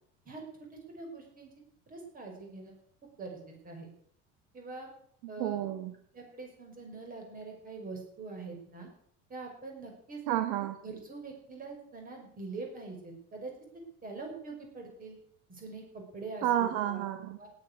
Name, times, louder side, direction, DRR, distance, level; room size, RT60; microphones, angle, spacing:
voice 1, 0.9-1.5 1.9-2.7 3.0-3.9 4.5-4.9 5.3-5.6 6.1-8.9 9.3-10.2 10.8-13.5 14.0-15.2 15.5-17.0 17.4-17.5, right 3 dB, 25° right, 2 dB, 5.8 m, -44 dB
voice 2, 5.4-5.9 10.3-10.8 16.4-17.4, right 12 dB, 85° right, 9 dB, 1.4 m, -30 dB
17.0 x 12.0 x 6.6 m, 0.65 s
cardioid pair, 160°, 34 cm